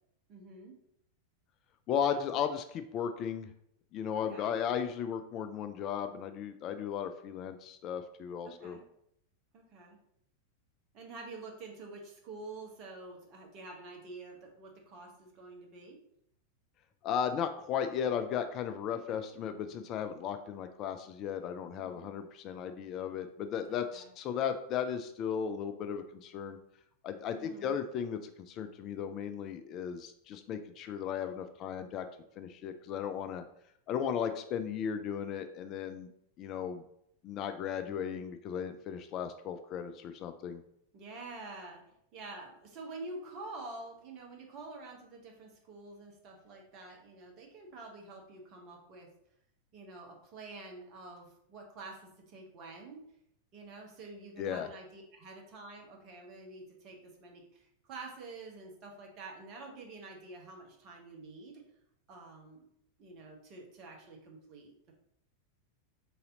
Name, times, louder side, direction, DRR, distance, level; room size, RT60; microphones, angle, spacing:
voice 1, 0.3-0.7 2.0-2.2 4.1-4.6 8.4-8.8 9.5-10.0 10.9-16.0 18.9-19.2 21.8-22.1 23.7-24.1 27.3-27.8 37.9-38.1 40.9-41.8 42.1-49.1 49.7-53.0 53.5-61.6 62.1-62.6 63.0-64.9, right 3 dB, 40° right, 0 dB, 1.0 m, -48 dB
voice 2, 1.9-3.5 3.9-8.8 17.0-26.6 27.0-28.2 28.5-32.1 32.4-33.4 33.9-36.1 36.4-36.8 37.2-40.6 54.4-54.7, left 8 dB, 35° left, 8 dB, 0.3 m, -35 dB
3.9 x 2.7 x 3.9 m, 0.73 s
figure-of-eight pair, 90°, 0 cm